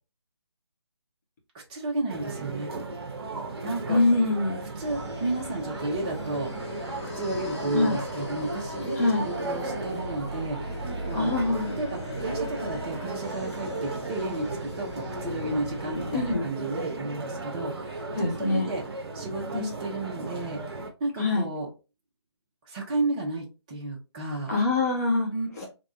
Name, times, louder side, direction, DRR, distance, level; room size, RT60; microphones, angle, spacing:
voice 1, 1.5-2.7 3.6-4.0 4.8-6.7 7.1-11.4 11.8-18.8 19.1-20.6 21.0-21.7 22.6-24.5 25.3-25.6, right 2 dB, 20° right, -2 dB, 0.6 m, -33 dB
sound 1, 2.1-20.9, right 3 dB, 60° right, 0.7 m, -35 dB
voice 2, 3.9-4.6 7.7-8.0 9.0-9.2 11.1-11.8 16.1-16.4 18.2-18.7 19.5-19.7 21.2-21.5 24.5-25.3 25.6-25.7, left 3 dB, 35° left, -2 dB, 0.9 m, -24 dB
sound 2, 4.8-16.4, left 2 dB, 80° left, 1.1 m, -38 dB
3.5 x 2.2 x 2.5 m, 0.30 s
figure-of-eight pair, 155°, 15 cm